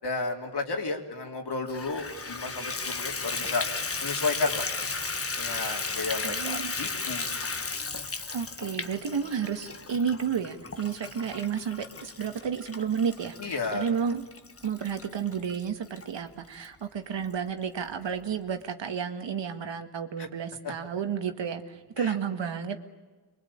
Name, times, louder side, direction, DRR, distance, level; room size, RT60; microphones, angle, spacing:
voice 1, 0.0-3.6 4.0-4.7 5.4-7.3 13.4-13.9 20.2-20.3 22.0-22.1, left 3 dB, 65° left, 2 dB, 3.7 m, -32 dB
Water tap faucet / Bathtub (filling or washing), 1.7-16.1 16.6-16.7 17.2-17.3 17.6-17.7, left 4 dB, 30° left, 1.3 m, -35 dB
voice 2, 6.2-6.8 8.3-14.2 14.6-22.8, right 7 dB, 80° right, 7 dB, 1.9 m, -31 dB
28.0 x 23.5 x 8.8 m, 1.3 s
wide cardioid pair, 85°, 43 cm